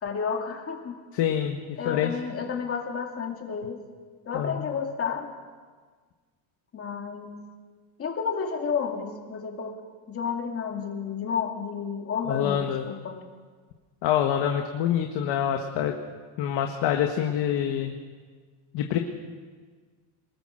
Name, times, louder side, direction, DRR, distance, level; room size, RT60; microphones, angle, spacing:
voice 1, 0.0-1.0 1.8-3.8 4.3-5.4 6.7-7.4 8.0-13.2, left 6 dB, 30° left, 3 dB, 2.4 m, -31 dB
voice 2, 1.1-2.1 4.3-4.7 12.3-12.8 14.0-15.9 16.4-17.9 18.7-19.0, left 10 dB, 55° left, 4 dB, 1.7 m, -26 dB
23.5 x 21.5 x 6.5 m, 1.5 s
cardioid pair, 165°, 49 cm